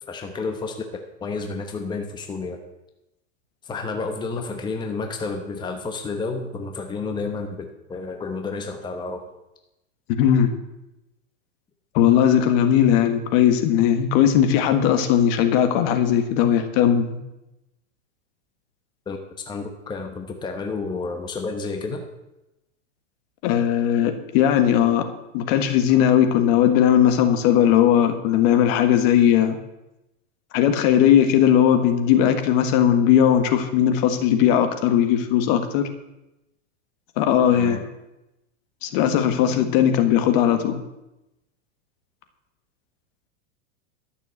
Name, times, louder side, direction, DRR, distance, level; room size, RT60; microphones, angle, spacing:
voice 1, 0.0-0.7 1.2-2.6 3.6-9.2 19.1-19.2 19.5-22.1 24.8-24.9 37.5-37.8, left 4 dB, 10° left, 4 dB, 1.0 m, -30 dB
voice 2, 10.2-10.5 11.9-17.2 23.4-25.1 25.3-29.6 30.5-35.9 37.2-37.8 38.8-40.8, left 9 dB, 50° left, 8 dB, 1.6 m, -18 dB
12.5 x 6.8 x 7.9 m, 0.95 s
supercardioid pair, 140°, 39 cm